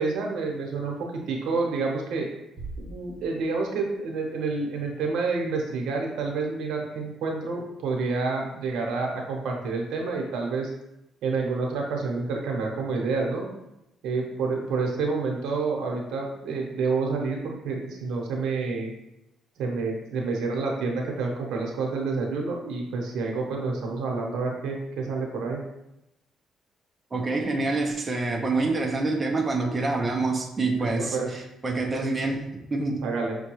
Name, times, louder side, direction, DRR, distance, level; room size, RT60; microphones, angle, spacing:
voice 1, 0.0-2.3 2.8-10.7 11.2-13.5 14.0-18.9 19.6-25.6 30.8-31.3 33.0-33.4, right 4 dB, 85° right, 0 dB, 0.9 m, -28 dB
sound 1, 2.6-4.0, right 2 dB, 55° right, 0.9 m, -41 dB
voice 2, 27.1-33.0, right 3 dB, 25° right, 0 dB, 0.6 m, -27 dB
6.0 x 2.2 x 3.0 m, 0.89 s
cardioid pair, 90°, 0 cm